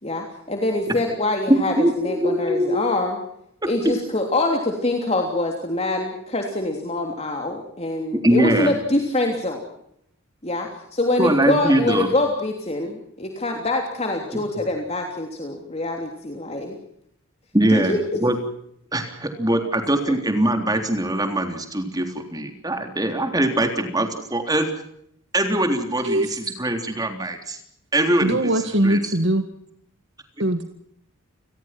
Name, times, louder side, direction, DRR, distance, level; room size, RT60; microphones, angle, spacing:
voice 1, 0.0-3.2 3.7-9.6 10.4-16.8 17.7-18.1 19.6-19.7 20.0-20.2, left 2 dB, 30° left, 2 dB, 3.2 m, -25 dB
voice 2, 1.5-2.8 8.2-8.7 11.2-12.1 14.3-14.4 17.5-18.4 18.9-24.7 25.3-27.6 27.9-28.5 28.8-29.0, right 1 dB, 20° right, 5 dB, 3.6 m, -22 dB
voice 3, 26.0-26.4 28.2-29.5 30.4-30.6, right 1 dB, 60° right, 7 dB, 1.9 m, -21 dB
30.0 x 21.0 x 6.0 m, 0.74 s
head